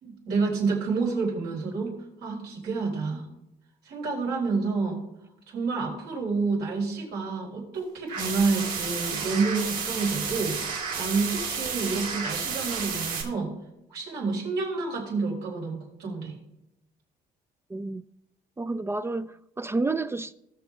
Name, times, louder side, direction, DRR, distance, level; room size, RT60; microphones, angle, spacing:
voice 1, 0.0-3.3 3.8-5.0 5.5-13.5 13.9-16.3, right 4 dB, 80° right, 4.9 m, -29 dB
sound 1, 8.1-13.2, right 6 dB, 60° right, 3.5 m, -31 dB
voice 2, 17.7-18.0 18.6-20.3, right 3 dB, 15° right, 0.4 m, -30 dB
19.5 x 6.9 x 3.6 m
cardioid pair, 110°, 17 cm